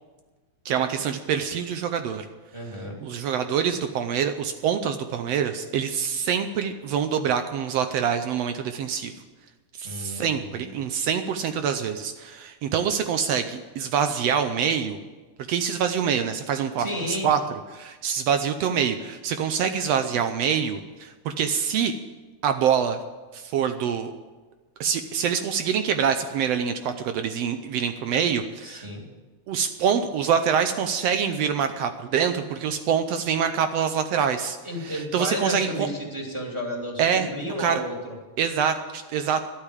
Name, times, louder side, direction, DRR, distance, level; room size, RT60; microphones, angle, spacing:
voice 1, 0.6-2.3 3.0-9.1 9.8-15.0 15.5-17.4 17.7-21.9 22.4-23.0 23.3-24.1 24.8-28.9 29.5-34.6 34.8-35.9 37.0-37.3 37.6-37.8 38.4-39.4, right 7 dB, 70° right, 8 dB, 1.6 m, -25 dB
voice 2, 2.5-3.0 9.8-10.7 16.8-17.3 28.6-29.0 34.6-38.2, equal, 10° right, -1 dB, 2.4 m, -32 dB
12.0 x 8.4 x 9.9 m, 1.3 s
omnidirectional pair, 3.4 m